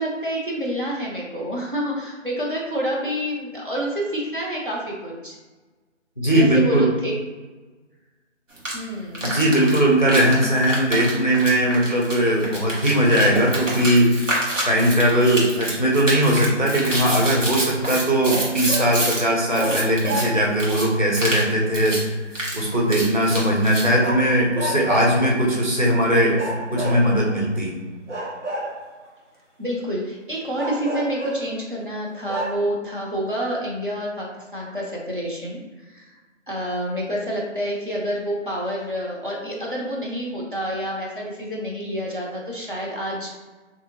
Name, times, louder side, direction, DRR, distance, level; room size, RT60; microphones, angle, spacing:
voice 1, 0.0-5.4 6.3-7.1 8.7-9.3 25.2-25.6 29.6-36.1 36.5-43.3, equal, 45° right, -4 dB, 0.8 m, -28 dB
voice 2, 6.2-6.9 9.2-14.2 14.7-22.0 22.5-26.4 26.7-27.8, right 1 dB, 40° left, -3 dB, 0.5 m, -19 dB
sound 1, 8.6-8.7 9.1-19.2 19.5-20.2 20.6-20.8 21.1-21.5 21.7-22.0 22.3-23.9, right 1 dB, 90° right, 1.5 m, -28 dB
sound 2, 18.2-19.0 19.5-20.6 24.0-25.2 26.3-27.4 28.1-29.1 30.5-31.6 32.0-32.1 32.3-32.6, right 1 dB, 70° right, 1.0 m, -29 dB
3.0 x 2.7 x 2.7 m, 1.3 s
figure-of-eight pair, 175°, 37 cm